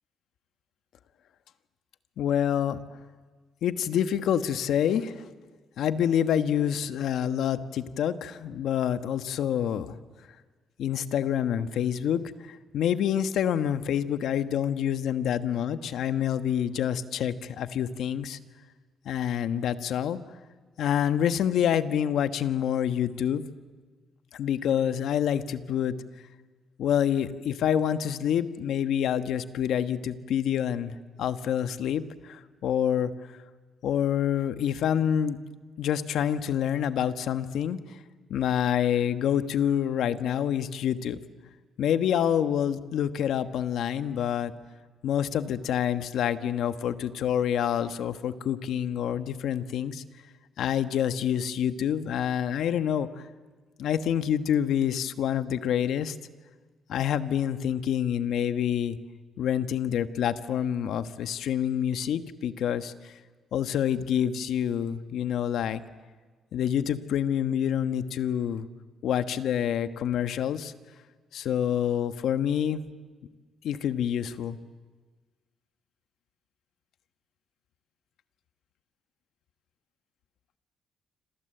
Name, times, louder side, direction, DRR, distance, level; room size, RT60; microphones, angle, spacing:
voice 1, 2.2-2.8 3.6-5.3 5.8-9.9 10.8-18.4 19.0-20.2 20.8-23.4 24.3-25.9 26.8-33.1 33.8-35.4 35.8-38.0 38.3-41.2 41.8-44.5 45.0-50.0 50.6-53.2 53.8-56.2 56.9-59.0 59.4-63.1 63.5-65.8 66.5-68.7 69.0-70.7 71.3-72.8 73.6-74.6, left 9 dB, 75° left, 10 dB, 1.3 m, -27 dB
27.0 x 27.0 x 7.9 m, 1.4 s
cardioid pair, 90°, 0 cm